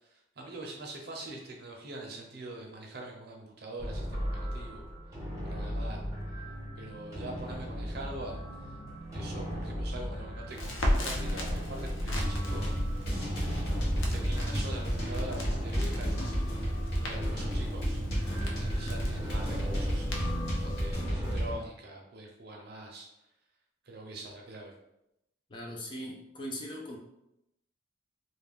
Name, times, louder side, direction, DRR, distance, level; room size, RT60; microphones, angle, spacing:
voice 1, 0.0-4.9 5.4-6.0 6.8-8.7 9.1-12.7 14.1-16.5 17.0-18.0 18.6-23.1 23.8-24.7, right 2 dB, 55° right, 1 dB, 0.6 m, -44 dB
sound 1, 3.8-21.4, equal, 15° right, 0.8 m, -38 dB
Crackle, 10.5-20.9, left 1 dB, 90° left, 0.6 m, -37 dB
sound 2, 12.1-21.6, equal, 55° left, 0.8 m, -32 dB
voice 2, 25.5-27.0, equal, 25° left, 0 dB, 0.4 m, -40 dB
2.3 x 2.1 x 3.4 m, 0.84 s
head